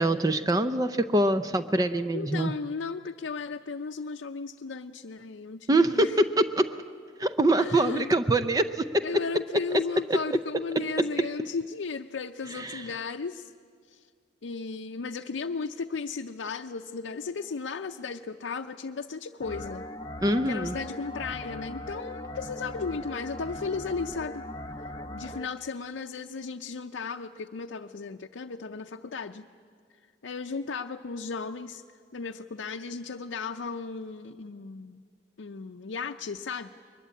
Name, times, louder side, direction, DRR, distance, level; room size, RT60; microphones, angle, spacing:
voice 1, 0.0-2.5 5.7-6.7 7.2-9.0 10.1-10.4 11.0-11.1 12.5-12.8 20.2-20.8, right 1 dB, 20° right, 9 dB, 0.5 m, -24 dB
voice 2, 2.1-6.2 7.6-8.1 9.0-13.5 13.9-14.1 14.4-19.9 20.4-24.4 25.1-29.5 30.2-31.8 32.1-35.0 35.4-36.7, left 4 dB, 85° left, 3 dB, 0.6 m, -35 dB
sound 1, 19.4-25.5, left 1 dB, 25° left, 0.6 m, -39 dB
22.5 x 20.0 x 8.4 m, 2.1 s
head